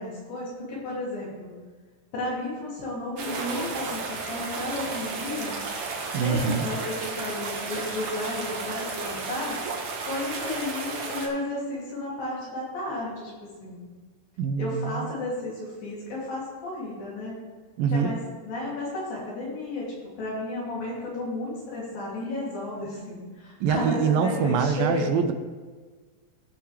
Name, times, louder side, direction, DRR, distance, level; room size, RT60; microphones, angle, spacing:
voice 1, 0.0-1.5 2.1-5.7 6.1-9.6 10.0-13.3 13.6-13.8 14.6-17.4 17.9-19.9 20.2-25.1, left 2 dB, 80° left, -6 dB, 4.5 m, -33 dB
sound 1, 3.2-11.3, right 4 dB, 60° right, 1.6 m, -33 dB
voice 2, 6.1-6.7 14.4-15.1 17.8-18.2 23.6-25.3, right 6 dB, 90° right, 7 dB, 2.5 m, -25 dB
17.5 x 6.0 x 3.3 m, 1.4 s
omnidirectional pair, 4.0 m